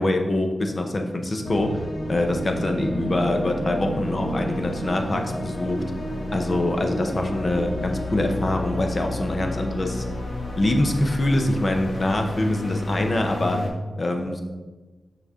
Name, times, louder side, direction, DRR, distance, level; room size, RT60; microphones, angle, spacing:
voice 1, 0.0-1.7 2.1-5.8 6.3-10.0 10.6-13.6 14.0-14.4, left 1 dB, 40° left, 4 dB, 0.9 m, -24 dB
sound 1, 1.4-13.7, left 1 dB, 70° left, 1.0 m, -31 dB
6.4 x 5.9 x 3.8 m, 1.3 s
wide cardioid pair, 75°, 0 cm